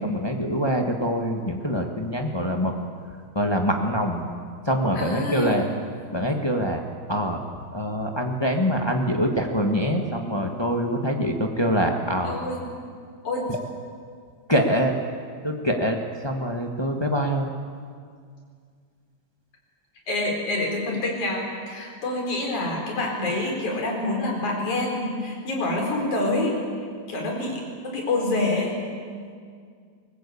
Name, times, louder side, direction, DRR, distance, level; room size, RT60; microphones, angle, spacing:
voice 1, 0.0-2.7 3.3-4.3 4.6-5.7 6.1-6.8 7.1-7.4 7.7-12.3 13.5-13.6 14.5-15.0 15.4-17.5, equal, 25° left, 2 dB, 0.5 m, -24 dB
voice 2, 4.9-5.6 12.2-12.6 13.2-13.5 20.1-26.6 27.1-28.8, left 2 dB, 85° left, 0 dB, 5.8 m, -27 dB
23.0 x 19.5 x 8.5 m, 2.1 s
omnidirectional pair, 3.3 m